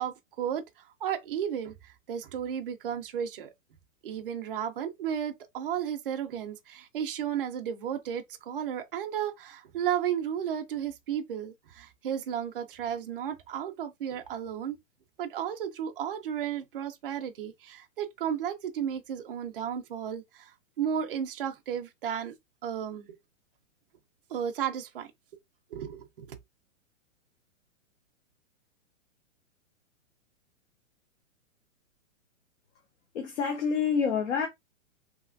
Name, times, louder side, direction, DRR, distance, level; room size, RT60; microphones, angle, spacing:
voice 1, 0.0-3.5 4.0-14.8 15.2-22.3 22.6-23.1 24.3-25.1 25.7-26.4, right 9 dB, 45° right, 0.4 m, -33 dB
voice 2, 33.1-34.5, left 6 dB, 60° left, 0.9 m, -27 dB
3.2 x 2.6 x 2.5 m
hypercardioid pair, 175°, 40 cm